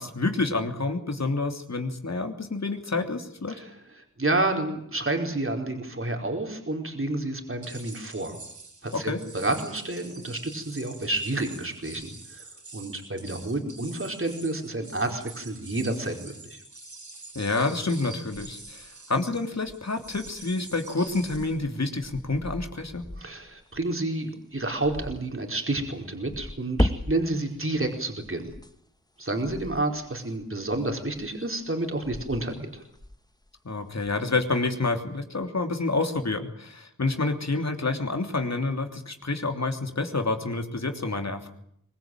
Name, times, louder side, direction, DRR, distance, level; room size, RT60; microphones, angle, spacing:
voice 1, 0.0-3.6 8.9-9.2 17.3-23.0 33.6-41.5, left 3 dB, 55° left, 5 dB, 3.2 m, -28 dB
voice 2, 3.5-8.4 8.8-12.5 12.7-16.6 23.2-28.5 29.2-32.8, right 2 dB, 40° right, 3 dB, 4.5 m, -30 dB
sound 1, 7.6-21.6, right 3 dB, 60° right, 5.7 m, -46 dB
sound 2, 18.3-24.0 24.6-25.3 26.1-28.9 29.2-31.7 31.9-33.5 33.9-34.6, left 1 dB, 10° left, 1.6 m, -36 dB
23.5 x 20.5 x 9.2 m, 0.72 s
wide cardioid pair, 65°, 32 cm